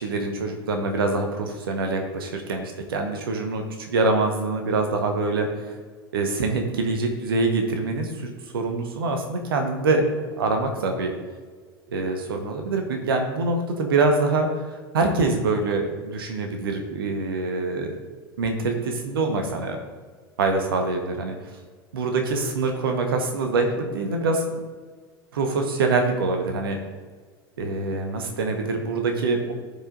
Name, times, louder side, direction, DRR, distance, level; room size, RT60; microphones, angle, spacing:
voice 1, 0.0-5.7 6.1-10.0 10.4-11.1 11.9-14.5 14.9-17.9 18.4-19.8 20.4-21.4 21.9-24.4 25.3-26.8 27.6-29.5, right 3 dB, 65° right, 4 dB, 1.2 m, -25 dB
14.5 x 5.0 x 2.6 m, 1.5 s
figure-of-eight pair, 85°, 13 cm